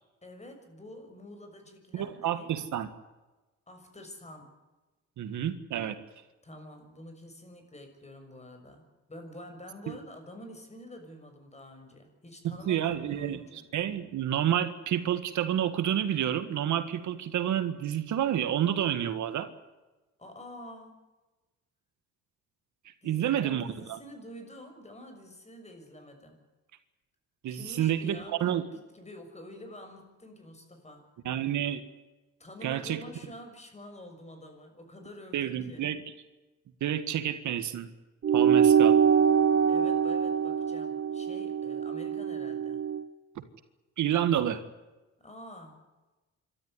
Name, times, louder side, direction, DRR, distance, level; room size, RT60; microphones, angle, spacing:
voice 1, 0.2-2.5 3.7-4.5 6.4-13.7 20.2-21.0 23.0-26.4 27.5-31.1 32.4-35.9 39.7-42.8 45.2-45.8, left 1 dB, 20° left, 6 dB, 6.6 m, -47 dB
voice 2, 1.9-2.9 5.2-6.0 9.9-10.0 12.4-13.4 13.7-19.5 23.0-24.0 27.4-28.6 31.2-31.8 32.6-33.0 35.3-36.0 36.8-37.9 38.3-39.0 44.0-44.6, right 10 dB, 75° right, 10 dB, 1.8 m, -29 dB
sound 1, 38.2-43.0, right 8 dB, 45° right, 1.1 m, -24 dB
26.5 x 13.0 x 10.0 m, 1.1 s
cardioid pair, 90°, 30 cm